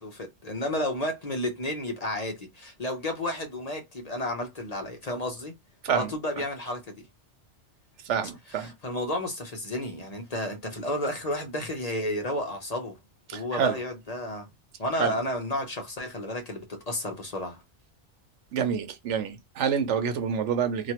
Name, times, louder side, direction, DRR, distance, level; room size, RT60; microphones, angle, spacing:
voice 1, 0.0-5.6 5.9-7.0 8.6-13.0 13.3-14.5 14.8-17.6, left 1 dB, 40° left, 0.8 m, -32 dB
voice 2, 8.0-8.7 13.3-13.8 15.0-15.2 18.5-20.9, right 7 dB, 80° right, 1.0 m, -27 dB
2.9 x 2.3 x 2.9 m
omnidirectional pair, 1.2 m